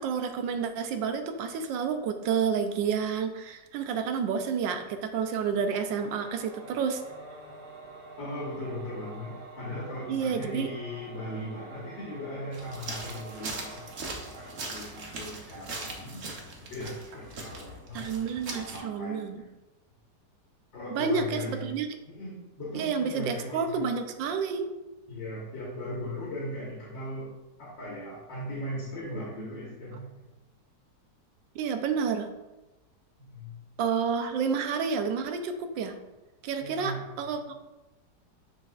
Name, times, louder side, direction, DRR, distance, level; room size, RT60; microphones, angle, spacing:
voice 1, 0.0-7.0 10.1-10.7 17.9-19.4 20.9-21.9 22.7-24.7 31.5-32.3 33.8-36.0 36.4-37.5, right 6 dB, 90° right, 7 dB, 1.4 m, -30 dB
Singing / Musical instrument, 5.8-15.9, right 3 dB, 70° right, 1.6 m, -48 dB
voice 2, 8.2-18.1 18.3-19.5 20.7-21.7 22.1-23.8 25.1-27.3 27.6-30.2 33.3-33.5 36.6-37.0, left 1 dB, 85° left, -6 dB, 2.1 m, -38 dB
sound 1, 12.5-18.8, right 3 dB, 50° right, 1.2 m, -40 dB
9.5 x 4.3 x 2.4 m, 1.1 s
omnidirectional pair, 1.9 m